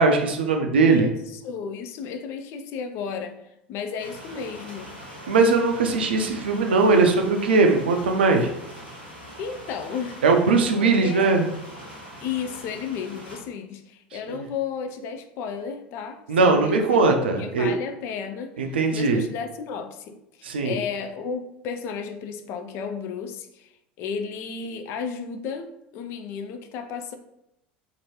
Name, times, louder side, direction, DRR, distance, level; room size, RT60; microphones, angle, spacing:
voice 1, 0.0-1.1 5.3-8.5 10.2-11.5 14.3-14.4 16.3-17.7 18.6-19.2 20.4-20.8, right 3 dB, 70° right, 4 dB, 0.4 m, -20 dB
voice 2, 0.7-3.4 3.7-4.9 9.4-10.2 10.8-11.3 12.2-17.1 17.4-20.2 20.6-23.7 24.0-27.1, left 6 dB, 45° left, 7 dB, 0.4 m, -33 dB
sound 1, 4.0-13.4, equal, 80° left, 1.0 m, -42 dB
2.8 x 2.6 x 2.9 m, 0.83 s
figure-of-eight pair, 75°, 6 cm